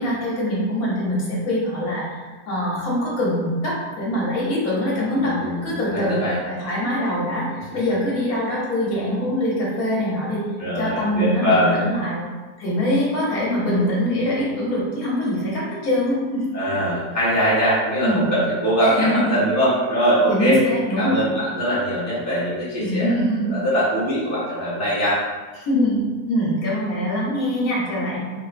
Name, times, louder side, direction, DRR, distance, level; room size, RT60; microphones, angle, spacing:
voice 1, 0.0-10.4 10.8-12.2 12.6-16.6 18.0-18.2 18.8-19.4 20.3-21.2 22.8-23.5 25.7-28.2, equal, 60° left, -6 dB, 1.4 m, -23 dB
voice 2, 5.1-6.4 10.6-11.8 16.5-20.6 21.0-23.1 23.4-25.2, equal, 15° right, -10 dB, 0.7 m, -22 dB
4.1 x 3.1 x 2.5 m, 1.3 s
omnidirectional pair, 1.9 m